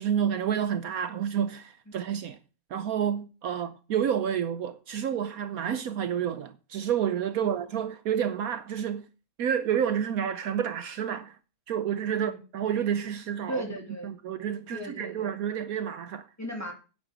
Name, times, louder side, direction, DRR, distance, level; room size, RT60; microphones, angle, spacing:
voice 1, 0.0-2.4 2.7-9.1 9.4-11.4 11.7-13.6 14.0-16.3, right 9 dB, 70° right, 1.1 m, -29 dB
voice 2, 13.5-14.1 14.7-15.3 16.4-16.7, equal, 10° left, 3.0 m, -37 dB
9.9 x 9.5 x 5.1 m
omnidirectional pair, 1.7 m